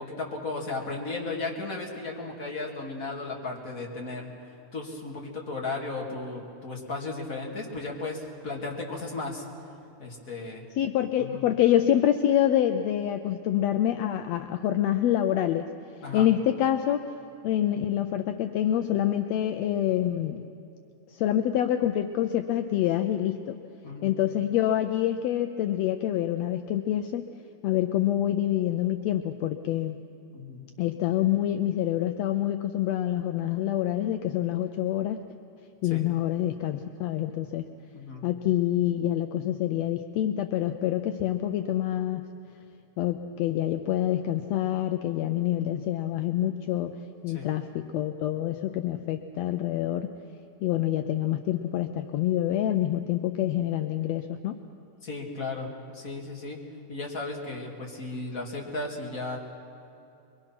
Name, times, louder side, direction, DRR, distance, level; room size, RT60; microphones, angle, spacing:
voice 1, 0.0-4.3 4.7-9.4 10.0-10.6 11.2-11.4 16.0-16.3 23.8-24.1 30.3-30.6 35.9-36.0 37.9-38.2 47.3-47.5 55.0-56.6 56.9-59.4, left 3 dB, 30° left, -1 dB, 2.5 m, -35 dB
voice 2, 10.8-15.7 16.1-17.0 17.4-20.5 21.1-23.6 24.0-27.2 27.6-30.0 30.8-35.2 35.8-37.6 38.2-42.3 43.0-47.0 47.2-50.1 50.6-54.6, left 11 dB, 80° left, 7 dB, 1.5 m, -26 dB
24.0 x 23.0 x 5.9 m, 2.7 s
omnidirectional pair, 3.7 m